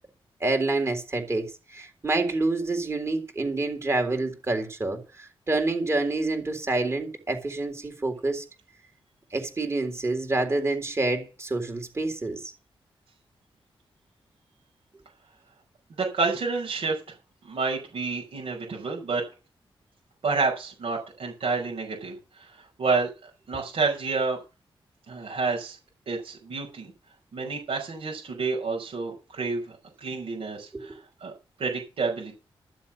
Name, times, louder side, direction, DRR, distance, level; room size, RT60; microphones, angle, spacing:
voice 1, 0.4-8.4 9.3-12.5 30.7-30.9, right 2 dB, 30° right, 3.7 m, -28 dB
voice 2, 16.0-17.0 17.4-19.2 20.2-22.5 22.8-24.4 25.1-25.8 26.1-26.9 27.3-31.0 31.2-31.3 31.6-32.3, right 4 dB, 80° right, 5.8 m, -29 dB
13.5 x 7.4 x 7.4 m
wide cardioid pair, 135°, 9 cm